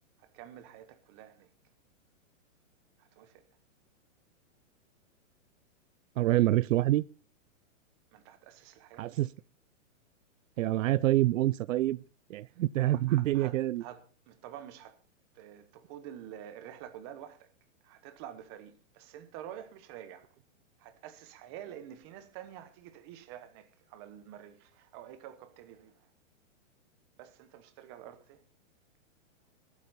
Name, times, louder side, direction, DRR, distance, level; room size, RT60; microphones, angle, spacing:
voice 1, 0.2-1.5 3.0-3.4 8.1-9.2 12.8-15.0 15.3-17.5 17.8-20.3 20.8-26.1 27.2-28.4, right 10 dB, 20° right, 0.9 m, -48 dB
voice 2, 6.2-7.0 9.0-9.3 10.6-12.0 12.3-13.8, right 15 dB, 80° right, 0.5 m, -26 dB
20.5 x 8.4 x 4.1 m
hypercardioid pair, 175°, 39 cm